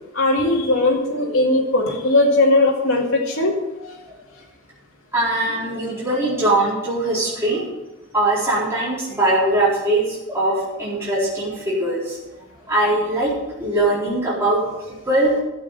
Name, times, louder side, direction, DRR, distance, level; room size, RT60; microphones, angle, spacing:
voice 1, 0.1-4.0, left 2 dB, 80° left, -2 dB, 2.2 m, -19 dB
voice 2, 5.1-7.7 8.1-12.2 12.7-15.4, right 1 dB, 10° right, -9 dB, 4.3 m, -21 dB
12.5 x 7.5 x 6.7 m, 1.0 s
head